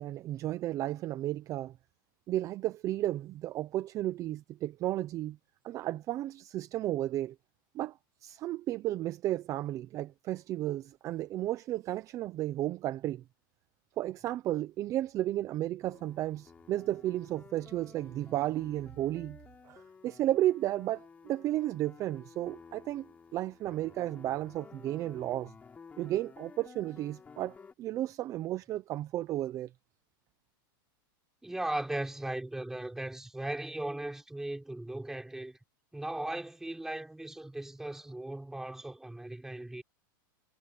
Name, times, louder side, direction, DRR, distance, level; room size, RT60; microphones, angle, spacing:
voice 1, 0.0-1.8 2.3-5.4 5.6-7.3 7.7-13.2 14.0-19.4 19.6-23.1 23.3-25.5 26.0-29.7, right 14 dB, 25° right, 0.7 m, -33 dB
sound 1, 15.8-27.7, left 5 dB, 15° left, 3.8 m, -54 dB
voice 2, 31.4-35.6 35.9-39.8, right 1 dB, 5° right, 3.8 m, -37 dB
supercardioid pair, 150°, 12 cm